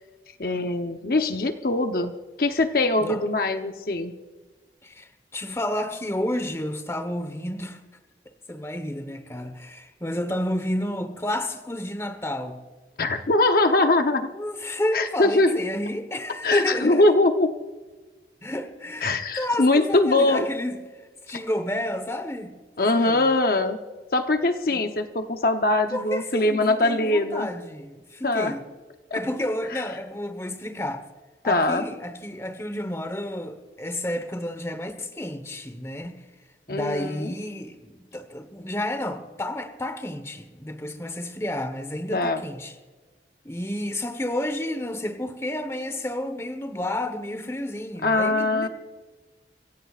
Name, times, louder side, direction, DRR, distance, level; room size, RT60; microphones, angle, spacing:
voice 1, 0.4-2.1 2.4-4.1 13.0-14.3 14.9-15.6 16.4-17.5 19.0-20.5 21.3-21.4 22.8-23.8 24.1-27.5 28.2-28.5 29.1-29.2 29.7-29.8 31.4-31.8 36.7-37.3 42.1-42.4 48.0-48.7, left 2 dB, 55° left, 0.8 m, -22 dB
voice 2, 4.8-7.8 8.5-12.6 14.4-17.0 18.4-19.1 19.4-20.8 21.3-22.5 23.0-23.2 24.7-24.8 25.9-28.6 29.1-31.0 31.4-36.2 36.7-42.7 43.4-48.7, left 1 dB, 15° left, 1.1 m, -30 dB
25.5 x 16.0 x 2.5 m
head